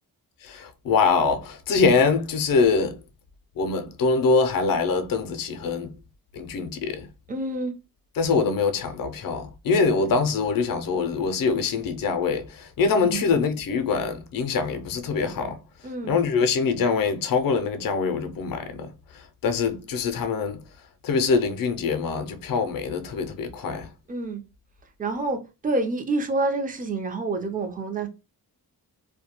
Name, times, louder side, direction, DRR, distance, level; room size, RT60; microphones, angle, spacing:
voice 1, 0.4-3.0 3.6-5.9 6.3-7.1 8.2-15.6 16.1-18.9 19.4-20.6 21.0-23.9, left 4 dB, 60° left, 0.5 m, -24 dB
voice 2, 7.3-7.7 13.1-13.2 15.8-16.2 24.1-24.4 25.0-28.1, right 2 dB, 20° right, 0.5 m, -27 dB
2.2 x 2.1 x 2.9 m
cardioid pair, 75°, 39 cm